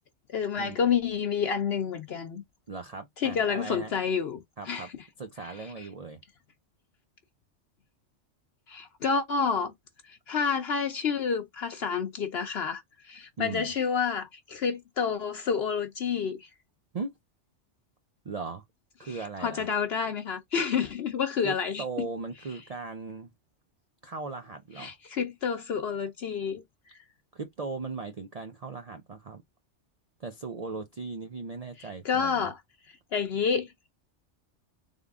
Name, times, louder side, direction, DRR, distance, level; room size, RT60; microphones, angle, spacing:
voice 1, 0.3-2.4 3.2-4.4 4.7-4.9 8.7-9.7 10.1-16.5 19.4-21.8 24.8-26.6 32.0-32.6 33.1-33.7, left 6 dB, 60° left, 0.9 m, -29 dB
voice 2, 2.7-3.9 4.6-4.9 5.2-6.2 13.4-13.7 16.9-17.1 18.2-18.6 19.0-19.7 21.4-23.3 24.0-25.0 27.3-29.4 30.2-32.5, right 4 dB, 50° right, 0.5 m, -38 dB
3.6 x 3.5 x 3.5 m
omnidirectional pair, 1.2 m